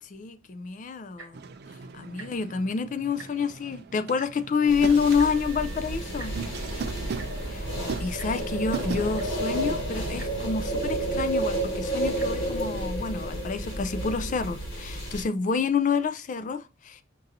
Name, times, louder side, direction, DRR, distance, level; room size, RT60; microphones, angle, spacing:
voice 1, 0.0-1.4 1.9-6.3 7.5-7.7 8.0-17.0, left 5 dB, 40° left, 0.3 m, -28 dB
Tick-tock, 1.1-1.4 2.1-2.3 2.6-2.7 3.0-3.5 4.2-4.3 5.2-5.3 6.2-6.3 7.2-7.3 8.2-8.3 8.9-9.0 9.1-9.5 10.2-10.3 11.2-11.3 12.1-12.3 13.0-13.1, right 3 dB, 75° right, 1.2 m, -44 dB
sound 1, 1.3-9.4, right 5 dB, 50° right, 0.3 m, -39 dB
sound 2, 4.7-15.2, right 1 dB, 75° left, 1.6 m, -31 dB
5.3 x 2.6 x 2.6 m
head